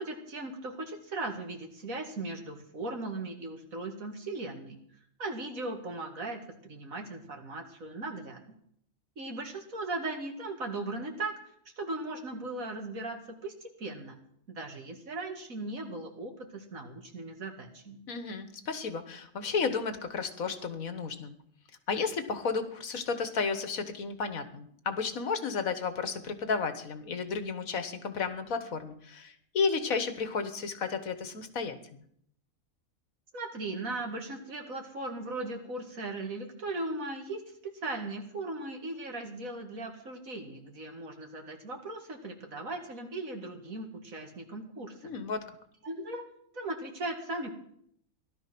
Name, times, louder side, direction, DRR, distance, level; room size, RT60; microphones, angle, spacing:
voice 1, 0.0-4.8 5.2-8.6 9.2-11.4 11.8-14.2 14.5-18.0 33.3-45.1 45.8-47.5, right 2 dB, 75° right, 4 dB, 2.6 m, -38 dB
voice 2, 18.1-21.3 21.9-32.0 45.0-45.5, left 5 dB, 80° left, 10 dB, 1.8 m, -33 dB
17.0 x 12.0 x 6.1 m, 0.69 s
omnidirectional pair, 1.4 m